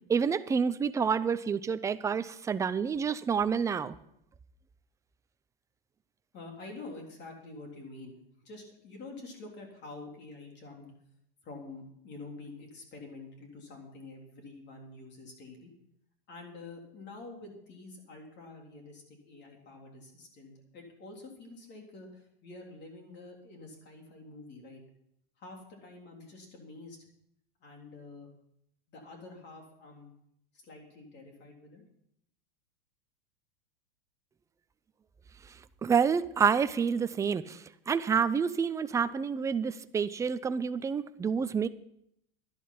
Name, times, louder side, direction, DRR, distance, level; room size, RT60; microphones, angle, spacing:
voice 1, 0.1-3.9 35.8-37.6 37.9-41.7, right 6 dB, 10° right, 12 dB, 0.4 m, -28 dB
voice 2, 6.3-8.2 8.4-10.9 11.4-15.7 16.3-24.8 25.4-27.1 27.6-28.3 28.9-30.1 30.5-31.8, left 3 dB, 35° left, 1 dB, 3.6 m, -47 dB
11.5 x 11.0 x 5.7 m, 0.73 s
hypercardioid pair, 120°, 30 cm